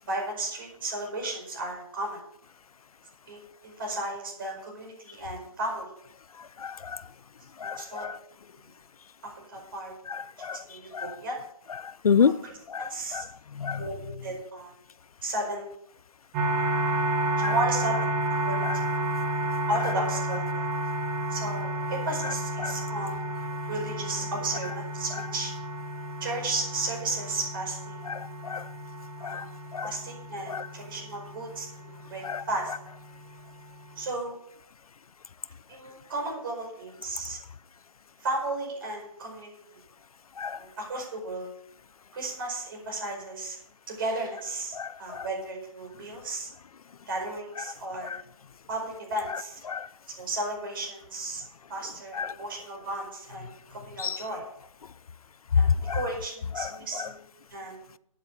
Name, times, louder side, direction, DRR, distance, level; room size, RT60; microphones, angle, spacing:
voice 1, 0.1-2.2 3.3-5.9 7.6-8.1 9.5-9.9 10.7-11.4 12.2-13.2 13.8-14.7 15.2-15.7 17.4-18.1 18.4-19.3 19.7-20.7 21.3-23.3 23.7-25.5 26.2-28.1 29.2-29.4 29.8-32.7 33.9-34.4 35.7-37.4 38.2-39.8 40.5-41.5 42.1-43.6 43.9-46.5 47.1-48.2 48.7-49.6 50.2-51.4 51.7-54.4 55.5-57.2 57.5-57.8, right 2 dB, 35° right, 0 dB, 5.0 m, -34 dB
voice 2, 6.6-7.0 7.6-7.8 10.1-10.6 10.9-11.1 12.0-12.3 12.7-12.8 13.6-13.8 17.4-17.5 22.6-22.7 28.1-28.6 29.2-29.4 29.7-29.9 30.5-30.7 32.2-32.4 40.4-40.6 44.7-45.2 49.7-49.9 52.2-52.3 54.0-54.2 55.9-56.0 56.6-56.7, left 6 dB, 80° left, 19 dB, 0.5 m, -28 dB
sound 1, 16.3-34.1, right 1 dB, 15° right, 1.3 m, -32 dB
8.9 x 8.5 x 6.7 m, 0.71 s
hypercardioid pair, 160°, 18 cm